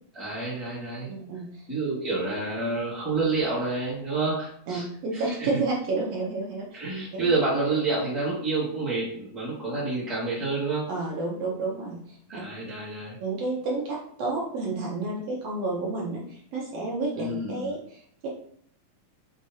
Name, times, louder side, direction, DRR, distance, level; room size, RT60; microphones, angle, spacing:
voice 1, 0.1-1.1 1.7-4.8 5.1-5.2 6.7-10.9 12.3-13.2 17.1-17.7, right 3 dB, ahead, -8 dB, 0.7 m, -28 dB
voice 2, 1.2-1.6 4.7-6.7 7.2-7.3 10.9-12.4 13.2-18.3, right 3 dB, 70° right, -3 dB, 1.6 m, -30 dB
6.2 x 2.8 x 2.8 m, 0.64 s
omnidirectional pair, 3.6 m